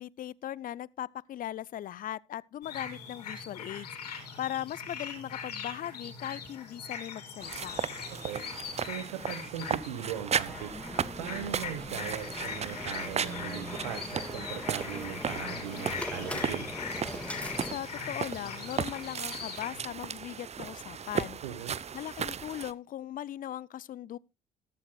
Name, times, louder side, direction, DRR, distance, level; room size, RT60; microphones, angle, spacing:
voice 1, 0.0-7.8 17.6-21.4 21.9-24.2, left 12 dB, 45° left, 0.5 m, -39 dB
sound 1, 2.6-19.8, left 6 dB, 90° left, 2.8 m, -41 dB
sound 2, 7.4-22.7, right 7 dB, 35° right, 0.7 m, -36 dB
voice 2, 8.2-10.7 11.2-16.7 21.4-21.7, right 10 dB, 80° right, 1.3 m, -39 dB
sound 3, 10.5-17.8, left 1 dB, 5° left, 1.9 m, -41 dB
14.0 x 12.5 x 2.3 m
hypercardioid pair, 55°, 20 cm